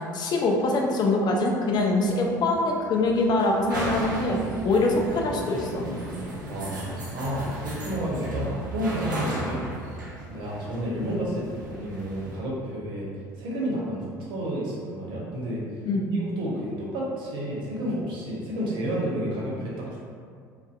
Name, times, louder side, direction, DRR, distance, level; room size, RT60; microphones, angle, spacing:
voice 1, 0.0-4.4 4.6-5.9 15.8-16.1, left 2 dB, 45° left, 0 dB, 0.4 m, -24 dB
sound 1, 1.8-12.4, right 1 dB, 85° right, 0.4 m, -35 dB
voice 2, 6.5-9.7 10.3-13.1 13.4-15.6 16.4-20.0, equal, 55° right, -5 dB, 0.7 m, -31 dB
2.5 x 2.1 x 2.4 m, 2.2 s
figure-of-eight pair, 60°, 10 cm